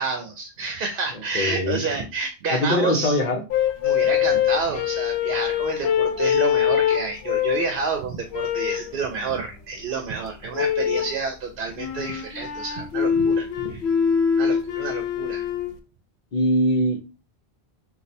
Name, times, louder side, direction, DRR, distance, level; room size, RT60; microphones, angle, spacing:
voice 1, 0.0-3.2 3.8-13.8 14.4-15.4, right 4 dB, 65° right, 0.7 m, -29 dB
voice 2, 1.3-1.8 2.5-3.4 16.3-17.0, equal, 50° left, 0.8 m, -22 dB
sound 1, 3.5-7.7 8.3-8.9 10.5-11.2 11.8-15.7, left 8 dB, 85° left, 0.9 m, -23 dB
3.1 x 2.3 x 4.1 m
omnidirectional pair, 1.1 m